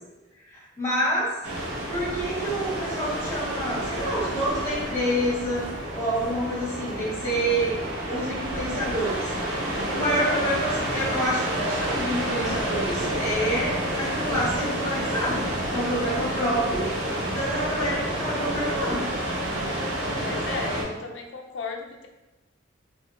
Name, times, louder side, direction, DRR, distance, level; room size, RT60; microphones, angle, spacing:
voice 1, 0.5-1.3 1.9-5.7 5.9-7.8 8.1-9.3 9.9-16.9 17.3-19.1, equal, 15° left, -7 dB, 1.2 m, -28 dB
sound 1, 1.4-20.8, right 1 dB, 80° right, 1.1 m, -29 dB
voice 2, 10.0-10.5 20.2-22.1, left 3 dB, 65° left, 2 dB, 0.5 m, -35 dB
3.4 x 2.7 x 2.8 m, 1.0 s
head